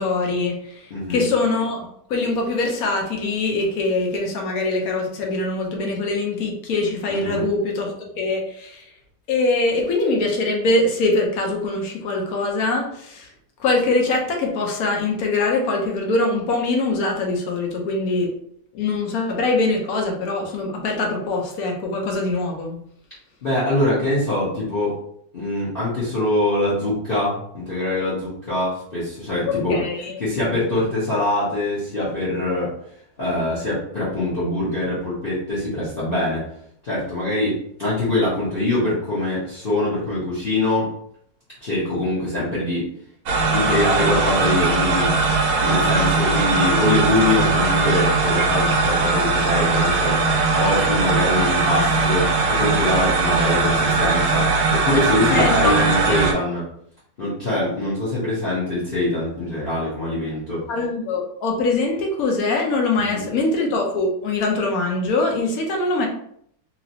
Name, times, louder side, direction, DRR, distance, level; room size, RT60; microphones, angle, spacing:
voice 1, 0.0-8.9 9.3-13.3 13.6-18.3 18.7-22.8 29.5-30.2 55.3-55.8 56.1-56.2 60.7-66.1, left 2 dB, 65° left, 1 dB, 0.9 m, -23 dB
voice 2, 0.9-1.2 7.1-7.4 23.4-25.0 25.3-29.8 30.2-32.7 33.2-36.4 36.8-40.9 41.6-42.9 43.5-45.2 45.6-56.7 57.2-60.6 63.1-63.2, left 1 dB, 40° left, -8 dB, 0.8 m, -23 dB
sound 1, 43.3-56.3, right 3 dB, 65° right, 0.9 m, -20 dB
3.0 x 2.9 x 2.7 m, 0.67 s
omnidirectional pair, 2.0 m